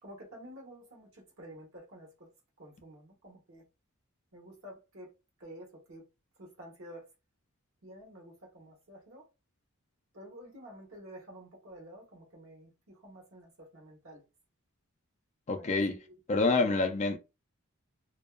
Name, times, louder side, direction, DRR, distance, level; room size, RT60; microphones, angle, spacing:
voice 1, 0.0-2.3 2.6-3.6 4.3-5.1 5.4-6.0 6.4-7.1 7.8-9.3 10.1-14.2 15.5-16.0 16.6-16.9, equal, 65° right, 1.1 m, -50 dB
voice 2, 15.5-16.0 16.3-17.2, left 3 dB, 30° left, 0.3 m, -27 dB
2.6 x 2.2 x 2.2 m
head